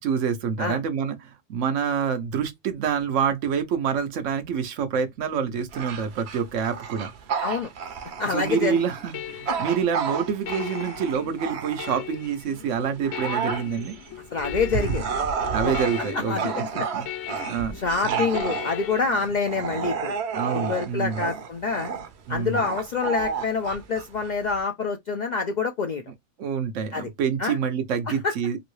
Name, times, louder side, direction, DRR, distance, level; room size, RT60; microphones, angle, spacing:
voice 1, 0.0-7.1 8.2-13.9 15.5-16.6 16.9-17.1 17.5-17.8 18.0-18.2 20.3-21.2 22.3-22.6 26.4-28.6, right 7 dB, 85° right, 1.1 m, -27 dB
Bark / Growling, 5.7-12.2 12.7-24.6, right 6 dB, 65° right, 0.9 m, -31 dB
voice 2, 8.2-8.8 9.5-9.6 14.3-15.1 15.6-15.8 16.1-16.9 17.3-20.1 20.5-21.9 22.3-26.0 26.9-27.1 27.4-27.6 28.1-28.3, left 4 dB, 60° left, 0.4 m, -27 dB
sound 1, 8.5-19.0, left 11 dB, 90° left, 0.9 m, -38 dB
3.0 x 2.6 x 3.1 m
omnidirectional pair, 1.2 m